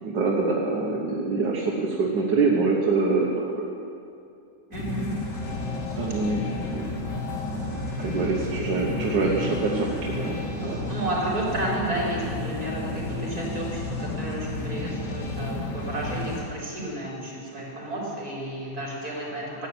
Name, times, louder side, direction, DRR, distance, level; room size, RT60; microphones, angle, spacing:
voice 1, 0.0-3.7 6.0-6.4 6.7-6.9 8.0-10.8, right 3 dB, 85° right, -2 dB, 1.9 m, -25 dB
sound 1, 4.7-16.4, left 2 dB, 80° left, 2.7 m, -32 dB
voice 2, 4.7-5.2 6.3-6.4 10.6-19.7, right 1 dB, 60° right, -5 dB, 4.9 m, -32 dB
15.0 x 9.8 x 8.0 m, 2.6 s
omnidirectional pair, 1.8 m